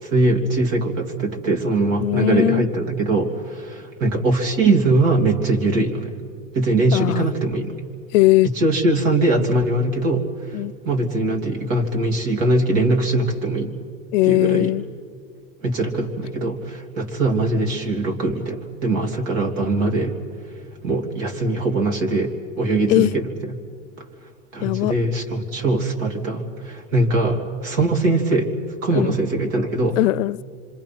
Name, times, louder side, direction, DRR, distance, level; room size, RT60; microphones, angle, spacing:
voice 1, 0.0-6.2 6.5-7.8 8.4-13.7 14.2-14.7 15.6-20.1 20.5-23.5 24.0-24.1 24.5-28.5 28.8-30.0, right 2 dB, 70° right, 3.2 m, -21 dB
voice 2, 2.0-2.6 6.9-7.3 8.1-8.5 10.5-10.7 14.1-14.8 22.9-23.1 24.6-24.9 28.9-29.2 30.0-30.4, left 20 dB, 70° left, 0.5 m, -19 dB
27.5 x 25.5 x 6.0 m
supercardioid pair, 120°, 40 cm